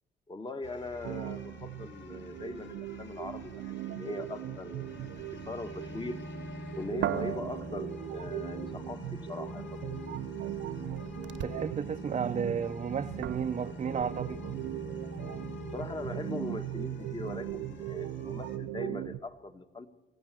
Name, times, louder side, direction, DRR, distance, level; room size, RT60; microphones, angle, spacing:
voice 1, 0.3-6.2 6.8-9.9 15.7-19.9, left 2 dB, 25° left, 1.5 m, -40 dB
sound 1, 0.6-18.6, left 1 dB, 65° left, 3.2 m, -45 dB
sound 2, 1.0-19.2, right 15 dB, 90° right, 0.6 m, -40 dB
sound 3, 4.8-11.7 12.1-17.9, right 10 dB, 70° right, 1.0 m, -44 dB
voice 2, 11.4-14.4, right 7 dB, 35° right, 0.6 m, -33 dB
26.5 x 16.0 x 7.6 m
cardioid pair, 90°, 20 cm